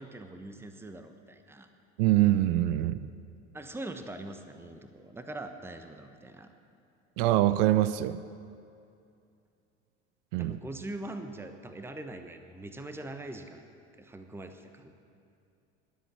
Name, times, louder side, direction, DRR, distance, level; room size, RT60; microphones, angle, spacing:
voice 1, 0.0-1.7 3.5-6.5 10.4-13.7 14.0-14.9, right 2 dB, 5° right, 7 dB, 1.1 m, -42 dB
voice 2, 2.0-3.1 7.2-8.2 10.3-10.6, right 14 dB, 55° right, 15 dB, 0.6 m, -24 dB
20.0 x 8.0 x 7.5 m, 2.5 s
figure-of-eight pair, 70°, 35 cm